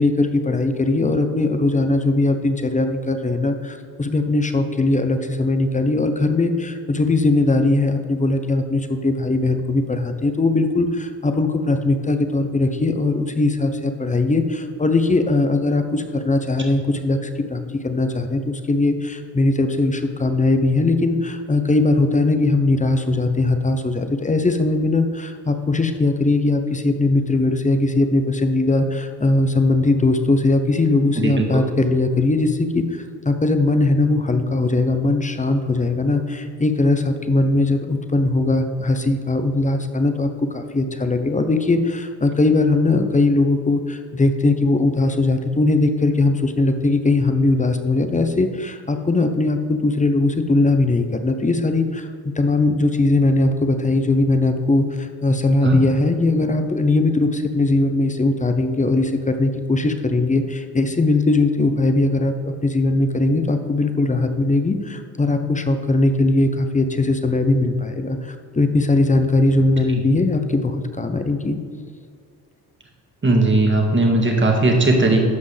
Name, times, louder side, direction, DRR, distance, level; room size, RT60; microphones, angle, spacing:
voice 1, 0.0-52.1 52.4-71.6, left 2 dB, 15° left, 7 dB, 0.8 m, -20 dB
voice 2, 73.2-75.2, right 2 dB, 25° right, 1 dB, 2.0 m, -17 dB
13.0 x 5.3 x 3.4 m, 2.2 s
supercardioid pair, 65°, 44 cm